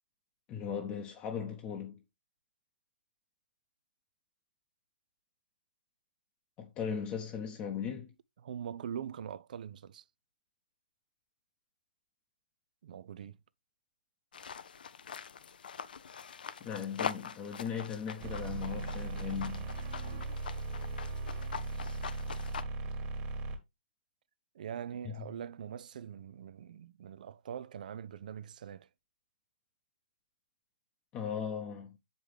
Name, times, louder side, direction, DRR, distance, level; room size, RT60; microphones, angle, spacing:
voice 1, 0.5-2.0 6.6-8.1 16.6-19.7 25.0-25.2 31.1-32.0, left 7 dB, 20° left, 0.9 m, -38 dB
voice 2, 8.4-10.0 12.8-13.4 24.5-28.9, right 8 dB, 50° right, 0.4 m, -43 dB
sound 1, 14.3-22.6, left 7 dB, 60° left, 0.5 m, -43 dB
sound 2, 18.2-23.6, right 3 dB, 30° right, 1.5 m, -38 dB
7.3 x 5.2 x 3.3 m
figure-of-eight pair, 125°, 5 cm